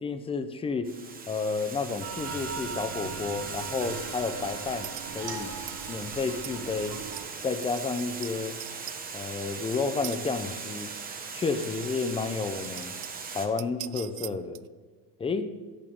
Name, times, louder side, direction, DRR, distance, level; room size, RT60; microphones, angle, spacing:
voice 1, 0.0-0.9 1.3-5.5 5.9-7.0 7.4-8.6 9.1-10.9 11.3-12.9 13.3-14.6 15.2-15.5, left 4 dB, 15° left, 10 dB, 0.6 m, -31 dB
Water, 0.8-13.5, right 5 dB, 20° right, 1.1 m, -39 dB
sound 1, 2.0-7.3, right 6 dB, 55° right, 1.9 m, -40 dB
sound 2, 4.8-5.1 5.7-5.9 6.4-6.6 7.0-7.3 7.6-8.3 8.6-9.0 10.0-10.2 10.6-10.7 12.0-12.1 12.5-13.3 13.6-14.7, right 21 dB, 70° right, 0.5 m, -41 dB
11.0 x 8.7 x 5.3 m, 1.5 s
cardioid pair, 150°, 45 cm